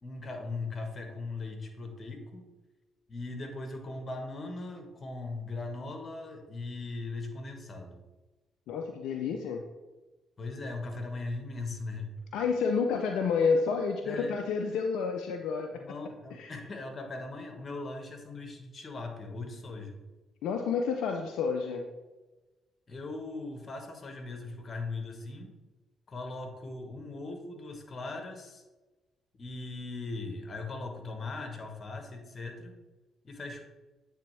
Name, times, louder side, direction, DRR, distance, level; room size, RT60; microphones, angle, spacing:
voice 1, 0.0-2.5 3.1-8.0 10.4-12.1 14.0-14.3 15.7-20.0 22.9-25.5 26.1-28.6 29.4-32.8 33.2-33.6, left 3 dB, 40° left, 4 dB, 1.2 m, -39 dB
voice 2, 8.7-9.6 12.3-15.9 16.3-16.5 20.4-21.9, left 5 dB, 75° left, 4 dB, 0.4 m, -30 dB
8.4 x 3.4 x 3.2 m, 1.2 s
hypercardioid pair, 50°, 0 cm